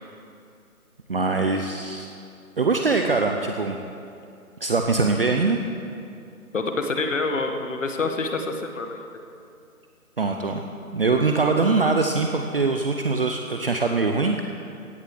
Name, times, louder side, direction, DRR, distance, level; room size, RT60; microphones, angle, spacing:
voice 1, 1.1-2.1 2.6-3.8 4.6-5.6 10.2-10.7 10.9-14.4, right 3 dB, 40° right, 4 dB, 0.8 m, -22 dB
voice 2, 6.5-9.0, left 3 dB, 55° left, 5 dB, 1.7 m, -27 dB
16.5 x 8.0 x 7.7 m, 2.5 s
figure-of-eight pair, 160°, 44 cm